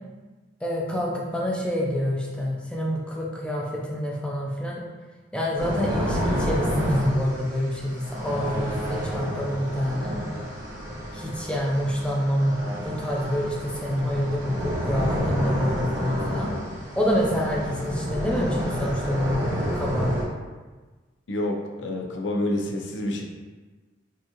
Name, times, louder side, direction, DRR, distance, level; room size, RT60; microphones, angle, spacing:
voice 1, 0.6-4.8 5.3-10.2 11.1-12.6 12.8-16.5 17.0-19.4 19.7-20.1, equal, 5° left, -3 dB, 0.5 m, -27 dB
sound 1, 5.6-20.2, equal, 85° right, 1.5 m, -29 dB
voice 2, 21.3-23.2, left 1 dB, 75° left, 1 dB, 0.6 m, -28 dB
4.6 x 2.7 x 3.0 m, 1.3 s
head